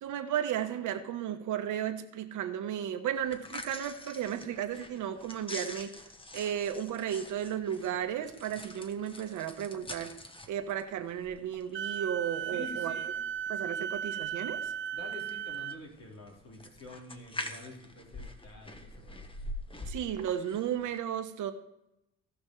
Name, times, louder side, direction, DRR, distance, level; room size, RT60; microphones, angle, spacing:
voice 1, 0.0-5.9 6.3-10.1 10.5-12.9 13.5-14.6 19.9-21.5, right 10 dB, 80° right, 6 dB, 1.2 m, -34 dB
sound 1, 3.2-21.0, left 1 dB, 15° left, 1.2 m, -46 dB
Wind instrument woodwind instrument, 11.7-15.8, right 8 dB, 40° right, 0.5 m, -36 dB
voice 2, 12.5-13.1 13.7-13.8 14.9-19.2, left 2 dB, 55° left, -1 dB, 4.1 m, -48 dB
18.0 x 6.2 x 3.3 m, 0.85 s
cardioid pair, 90°, 30 cm